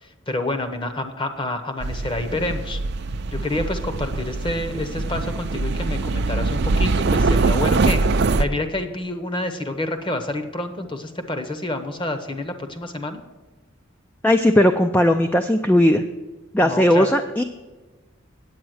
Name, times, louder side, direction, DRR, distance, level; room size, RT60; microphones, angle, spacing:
voice 1, 0.0-2.8 3.3-13.2 16.6-17.1, left 2 dB, 25° left, 8 dB, 0.9 m, -28 dB
sound 1, 1.8-8.4, right 3 dB, 50° right, 0.5 m, -23 dB
voice 2, 14.2-16.0 16.5-17.4, left 1 dB, 10° left, 7 dB, 0.3 m, -17 dB
9.1 x 8.6 x 6.3 m, 1.2 s
head